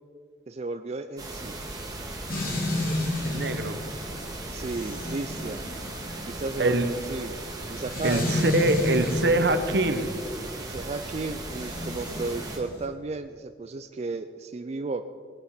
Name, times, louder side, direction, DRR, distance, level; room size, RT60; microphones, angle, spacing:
voice 1, 0.5-1.6 4.5-5.6 6.3-7.3 7.7-8.4 10.5-15.0, right 3 dB, 40° right, 8 dB, 0.4 m, -33 dB
sound 1, 1.2-12.6, right 2 dB, 20° right, 2.0 m, -37 dB
sound 2, 2.3-9.5 11.4-12.8, left 2 dB, 55° left, 3.0 m, -31 dB
voice 2, 3.2-3.8 6.6-6.8 8.0-10.1, right 2 dB, 70° right, 8 dB, 1.1 m, -24 dB
19.0 x 8.2 x 5.0 m, 2.1 s
head